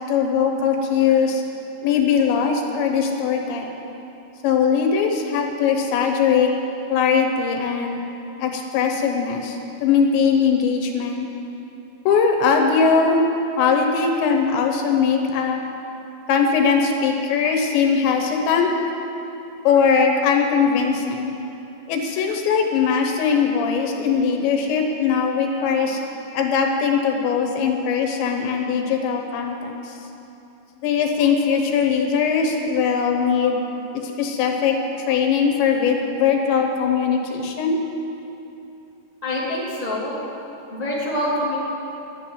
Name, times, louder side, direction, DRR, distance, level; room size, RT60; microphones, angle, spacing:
voice 1, 0.0-1.4 1.8-3.7 4.4-6.5 6.9-8.0 8.4-11.3 12.1-13.2 13.6-15.6 16.3-18.7 19.7-21.3 21.9-26.0 26.3-29.9 30.8-33.6 34.2-34.8 35.1-37.8, left 6 dB, 80° left, 3 dB, 3.4 m, -20 dB
voice 2, 33.2-33.5 39.2-40.1 40.7-41.6, left 1 dB, 15° right, -8 dB, 1.7 m, -27 dB
12.5 x 8.9 x 9.9 m, 2.8 s
omnidirectional pair, 5.2 m